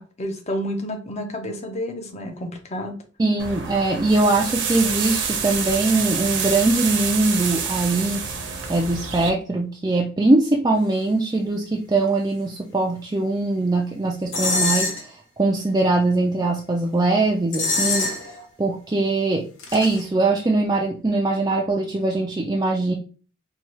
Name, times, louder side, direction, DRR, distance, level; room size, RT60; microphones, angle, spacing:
voice 1, 0.0-2.9, equal, 35° left, 4 dB, 0.7 m, -30 dB
voice 2, 3.2-8.3 8.7-14.9 15.4-18.1 18.6-22.9, right 2 dB, 20° right, -1 dB, 0.4 m, -21 dB
sound 1, 3.4-9.3, right 6 dB, 65° right, 0.8 m, -27 dB
sound 2, 14.3-15.0 17.5-18.4 19.6-20.0, left 3 dB, 90° left, 1.0 m, -24 dB
4.5 x 2.3 x 3.0 m, 0.37 s
head